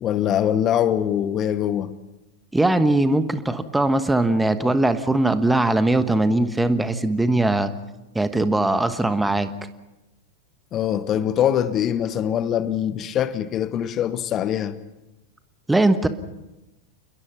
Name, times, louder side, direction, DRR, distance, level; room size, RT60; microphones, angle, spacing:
voice 1, 0.0-1.9 10.7-14.8, left 10 dB, 30° left, 1.0 m, -23 dB
voice 2, 2.5-7.7 8.1-9.5 15.7-16.1, right 2 dB, 5° right, 1.3 m, -20 dB
29.0 x 21.5 x 5.8 m
figure-of-eight pair, 90°, 0 cm